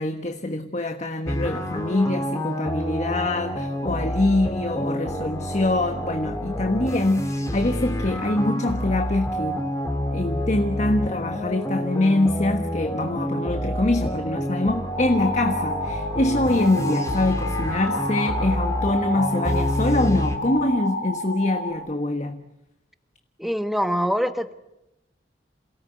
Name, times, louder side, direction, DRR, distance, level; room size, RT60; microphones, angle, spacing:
voice 1, 0.0-9.6 10.1-22.4, left 2 dB, 40° left, 1.4 m, -24 dB
sound 1, 1.2-20.4, equal, 15° left, 2.7 m, -28 dB
sound 2, 14.9-21.7, left 2 dB, 65° left, 3.6 m, -30 dB
voice 2, 23.4-24.5, equal, ahead, 1.3 m, -24 dB
28.0 x 17.5 x 9.1 m
head